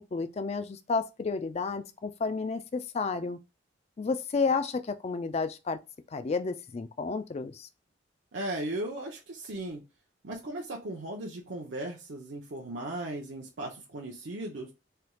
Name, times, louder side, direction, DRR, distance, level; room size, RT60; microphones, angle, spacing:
voice 1, 0.0-3.4 4.0-5.8 6.1-7.7, left 4 dB, 35° left, 0.3 m, -31 dB
voice 2, 8.3-9.8 10.2-14.7, right 1 dB, 70° right, 0.6 m, -37 dB
3.3 x 2.3 x 2.9 m
head